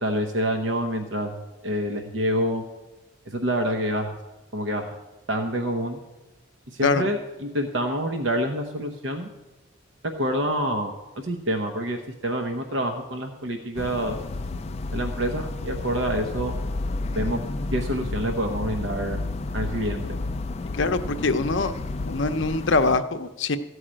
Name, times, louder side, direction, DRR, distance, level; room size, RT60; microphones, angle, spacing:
voice 1, 0.0-2.6 3.3-4.2 4.5-4.9 5.3-6.0 6.7-9.3 10.2-14.2 14.9-16.5 17.1-17.4 17.7-19.2 19.5-20.2, right 1 dB, 65° right, 4 dB, 0.9 m, -27 dB
sound 1, 13.7-23.0, left 2 dB, 30° left, 0.3 m, -31 dB
voice 2, 20.8-21.7 22.0-23.6, left 3 dB, 65° left, 9 dB, 0.7 m, -23 dB
14.5 x 4.8 x 8.8 m, 1.1 s
head